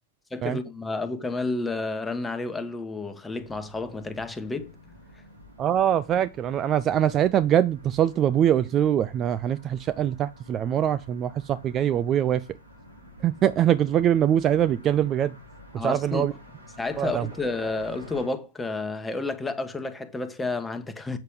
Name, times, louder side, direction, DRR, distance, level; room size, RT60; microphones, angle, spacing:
voice 1, 0.3-4.7 15.8-16.3 16.8-21.2, left 3 dB, 10° left, 1.3 m, -31 dB
sound 1, 3.4-18.3, left 1 dB, 80° right, 3.0 m, -49 dB
voice 2, 5.6-12.4 13.2-15.3 15.7-16.3 17.0-17.3, right 10 dB, 25° right, 0.4 m, -23 dB
8.1 x 6.5 x 3.7 m
figure-of-eight pair, 95°, 0 cm